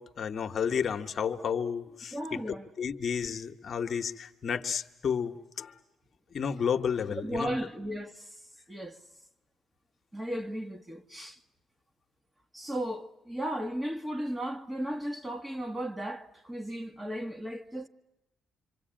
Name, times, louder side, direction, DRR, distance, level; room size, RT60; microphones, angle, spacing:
voice 1, 0.0-5.7 6.3-7.5, left 7 dB, 50° left, 1.1 m, -32 dB
voice 2, 2.1-2.7 7.1-8.3 8.7-9.0 10.1-11.4 12.5-17.9, equal, 15° right, 1.4 m, -35 dB
26.5 x 25.0 x 8.9 m
cardioid pair, 90°, 0 cm